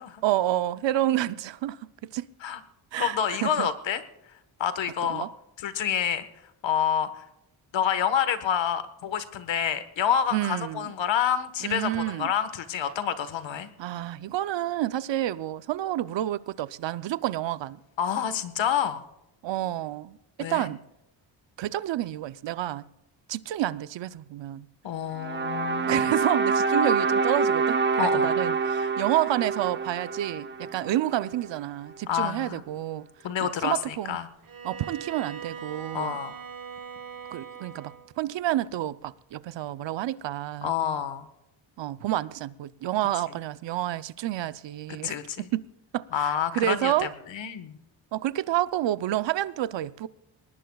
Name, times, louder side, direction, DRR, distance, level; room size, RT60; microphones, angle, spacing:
voice 1, 0.2-1.8 2.1-2.3 2.9-3.7 5.1-5.3 10.3-10.9 11.6-12.3 13.8-17.8 19.4-20.8 21.6-22.9 23.3-24.7 25.9-33.1 33.4-34.2 34.6-36.2 37.3-40.7 41.8-45.2 45.5-45.7 45.9-47.1 48.1-50.1, right 13 dB, 70° right, 0.6 m, -29 dB
voice 2, 3.0-4.0 4.6-5.3 5.6-6.2 6.6-7.2 7.7-13.7 18.0-19.0 20.4-20.7 24.8-26.1 28.0-28.3 32.1-32.6 33.2-34.3 35.9-36.3 40.6-41.3 45.0-45.5 46.1-47.8, left 8 dB, 75° left, 1.4 m, -28 dB
sound 1, 25.2-31.4, right 4 dB, 25° right, 0.9 m, -26 dB
Bowed string instrument, 34.4-38.2, right 7 dB, 45° right, 1.4 m, -41 dB
22.0 x 19.5 x 2.3 m
cardioid pair, 115°, 45 cm